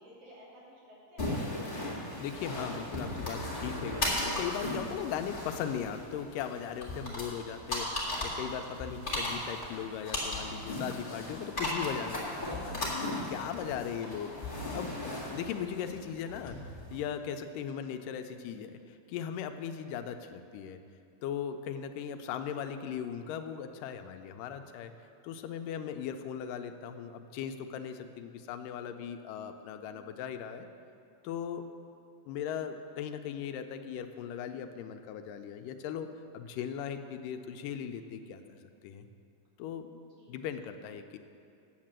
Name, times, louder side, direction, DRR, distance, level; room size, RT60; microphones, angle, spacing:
voice 1, 0.0-1.3 29.8-30.3 40.2-40.4, equal, 85° right, -6 dB, 4.5 m, -56 dB
sound 1, 1.2-17.0, left 1 dB, 20° left, 1.7 m, -36 dB
voice 2, 2.2-15.0 15.3-16.6 16.9-20.8 21.2-24.9 25.2-30.7 31.2-31.6 32.3-36.1 36.3-39.1 39.6-40.0 40.3-41.2, left 8 dB, 85° left, 8 dB, 2.2 m, -38 dB
9.4 x 7.6 x 7.4 m, 2.5 s
omnidirectional pair, 3.8 m